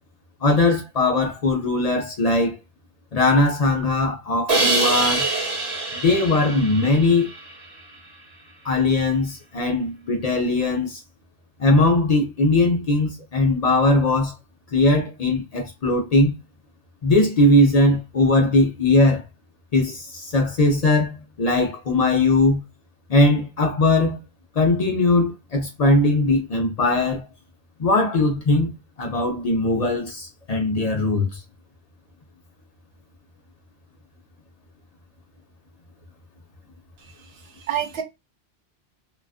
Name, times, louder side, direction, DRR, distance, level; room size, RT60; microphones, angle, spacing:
voice 1, 0.4-2.6 3.1-5.3 5.9-7.3 8.6-11.0 11.6-14.4 14.7-16.3 17.0-19.2 19.7-22.6 23.1-24.2 24.5-27.2 27.8-31.4, left 2 dB, 50° left, 0.5 m, -20 dB
Crash cymbal, 4.5-7.6, right 3 dB, 45° right, 0.8 m, -24 dB
voice 2, 37.0-38.0, right 10 dB, 75° right, 0.9 m, -30 dB
2.3 x 2.3 x 2.3 m
omnidirectional pair, 1.1 m